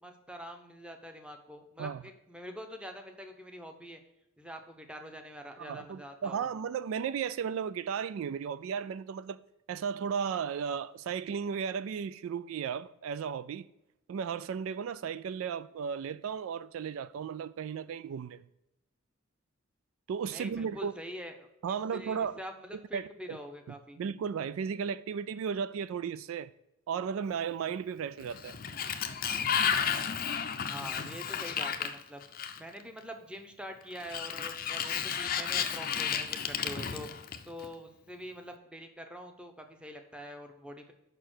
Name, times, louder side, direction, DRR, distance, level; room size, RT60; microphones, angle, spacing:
voice 1, 0.0-4.0 4.4-6.5 20.3-24.0 30.7-32.2 32.6-37.1 37.5-40.9, equal, 5° right, 0.8 m, -45 dB
voice 2, 5.6-9.4 9.7-13.7 14.1-18.4 20.1-20.9 21.6-22.4 22.9-23.4 24.0-26.5 26.9-28.6, right 7 dB, 70° right, 0.3 m, -35 dB
Sliding door, 28.2-32.8 34.0-37.7, left 7 dB, 40° left, 0.5 m, -32 dB
6.7 x 5.5 x 6.1 m
head